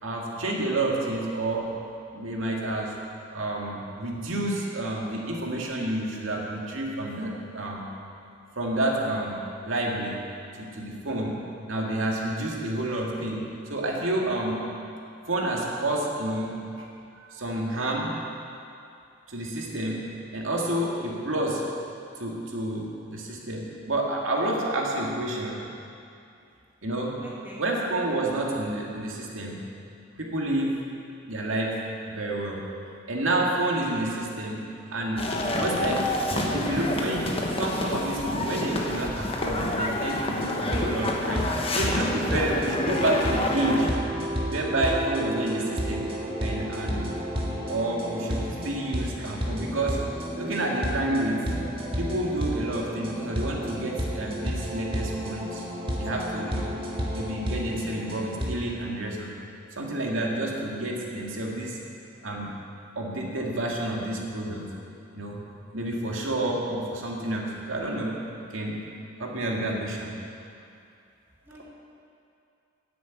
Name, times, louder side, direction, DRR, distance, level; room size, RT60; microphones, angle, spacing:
voice 1, 0.0-1.7 2.1-2.9 3.3-7.9 8.6-10.2 10.6-11.4 11.7-13.4 13.7-14.6 15.3-16.6 17.2-18.2 19.3-20.0 20.3-21.6 22.2-25.6 26.8-27.2 27.6-29.6 30.1-30.8 31.3-31.8 32.1-32.7 33.1-34.6 34.9-41.5 41.7-43.9 44.5-46.1 46.4-47.1 47.7-50.0 50.4-51.4 52.0-55.6 56.0-56.7 57.1-59.3 59.7-61.8 62.2-62.5 63.0-64.7 65.1-65.4 65.7-68.2 68.5-68.8 69.2-70.1, right 1 dB, 75° right, -2 dB, 2.2 m, -29 dB
voice 2, 27.2-27.6 33.9-34.2 71.5-71.7, right 1 dB, 10° right, -6 dB, 2.0 m, -45 dB
sound 1, 35.2-43.9, left 1 dB, 30° left, 1.2 m, -28 dB
sound 2, 39.8-58.5, equal, 25° right, 1.9 m, -32 dB
10.5 x 9.4 x 8.3 m, 2.6 s
head